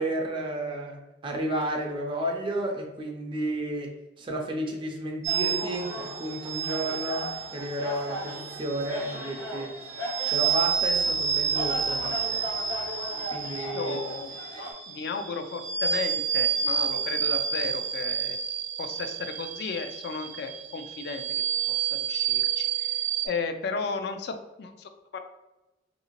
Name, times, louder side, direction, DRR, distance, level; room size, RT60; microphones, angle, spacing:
voice 1, 0.0-9.8 10.3-12.5 13.3-14.0, right 1 dB, 30° right, 1 dB, 0.4 m, -32 dB
sound 1, 5.2-23.3, right 7 dB, 80° right, 0.6 m, -30 dB
sound 2, 5.3-14.7, equal, 80° left, 0.8 m, -38 dB
voice 2, 13.7-14.4 14.9-18.4 18.8-23.0 23.2-25.2, left 4 dB, 65° left, 8 dB, 0.3 m, -34 dB
2.8 x 2.7 x 2.8 m, 1.1 s
head